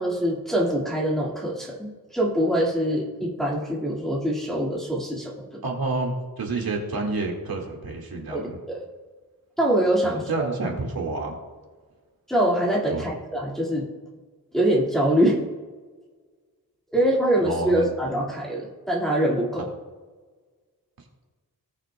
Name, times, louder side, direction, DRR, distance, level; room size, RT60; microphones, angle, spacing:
voice 1, 0.0-5.3 8.3-8.8 9.6-10.5 12.3-13.9 14.5-15.4 16.9-19.7, right 1 dB, ahead, -6 dB, 1.9 m, -24 dB
voice 2, 5.6-8.6 10.0-11.4 12.9-13.1 17.4-17.9, right 3 dB, 80° right, 1 dB, 1.9 m, -29 dB
19.0 x 6.5 x 2.2 m, 1.4 s
wide cardioid pair, 100°, 36 cm